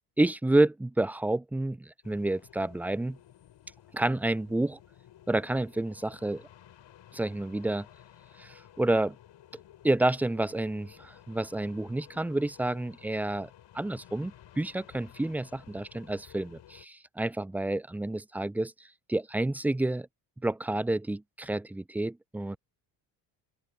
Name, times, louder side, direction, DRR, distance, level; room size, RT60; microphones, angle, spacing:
voice 1, 0.2-3.2 3.9-4.8 5.3-6.5 7.1-7.9 8.4-9.1 9.8-13.5 13.7-18.7 19.1-20.1 20.4-22.6, right 2 dB, 5° right, 0.3 m, -29 dB
sound 1, 2.0-16.8, left 11 dB, 60° left, 5.3 m, -55 dB
open air
supercardioid pair, 70°, 48 cm